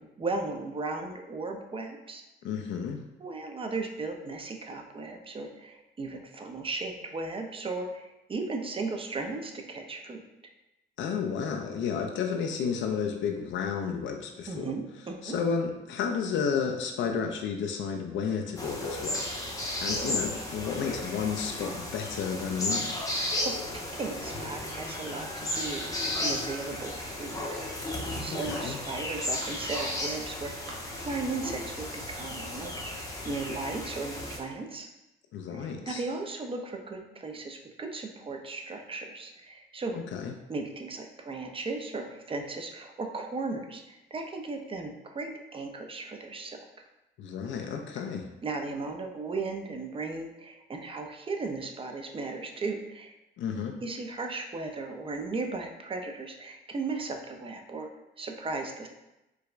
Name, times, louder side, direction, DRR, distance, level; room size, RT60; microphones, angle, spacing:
voice 1, 0.0-2.2 3.2-10.2 14.5-15.4 23.4-27.4 28.2-34.9 35.5-40.0 40.5-46.6 48.4-53.1 53.8-57.9 58.2-58.9, right 3 dB, 25° right, 3 dB, 0.5 m, -36 dB
voice 2, 2.4-3.0 11.0-14.7 15.2-19.2 19.8-22.9 28.3-28.8 35.3-36.0 40.1-40.3 47.2-48.3 53.4-53.8, left 6 dB, 70° left, 4 dB, 0.4 m, -32 dB
sound 1, 18.6-34.4, left 1 dB, 15° left, 0.7 m, -34 dB
Chink clink, 24.7-25.9 26.2-27.0 27.5-28.6 28.9-29.5 30.2-30.3 30.7-30.8, right 1 dB, 75° right, 0.8 m, -50 dB
4.6 x 2.1 x 2.4 m, 0.94 s
cardioid pair, 90°, 20 cm